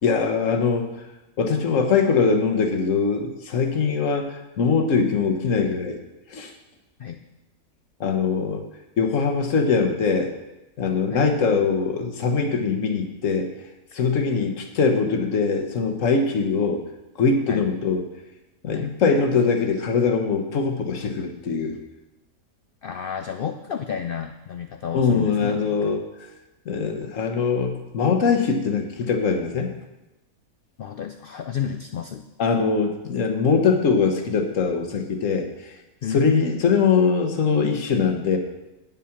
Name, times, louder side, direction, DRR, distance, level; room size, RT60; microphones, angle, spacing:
voice 1, 0.0-1.0 1.4-6.0 6.3-6.5 8.0-8.7 9.0-10.3 10.8-13.5 13.9-16.8 17.2-18.0 18.6-21.8 24.9-26.0 26.7-29.7 32.4-35.7 36.1-38.4, left 5 dB, 60° left, 5 dB, 1.4 m, -22 dB
voice 2, 22.8-26.0 30.8-32.3 36.0-36.5, left 8 dB, 85° left, 7 dB, 0.4 m, -31 dB
9.1 x 7.5 x 5.8 m, 1.0 s
omnidirectional pair, 1.5 m